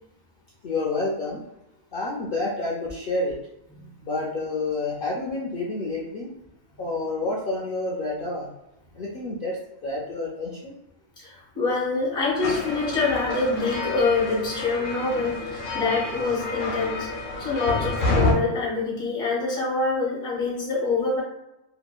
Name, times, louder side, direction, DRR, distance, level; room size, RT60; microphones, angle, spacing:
voice 1, 0.6-1.4 1.9-3.4 4.0-6.3 6.8-8.5 8.9-9.6 9.8-10.7, left 2 dB, 60° left, -5 dB, 0.6 m, -29 dB
voice 2, 11.2-17.1 17.4-21.2, left 3 dB, 5° left, -4 dB, 0.5 m, -25 dB
sound 1, 12.4-18.3, left 2 dB, 85° left, 1.0 m, -28 dB
2.8 x 2.2 x 2.3 m, 0.91 s
omnidirectional pair, 1.3 m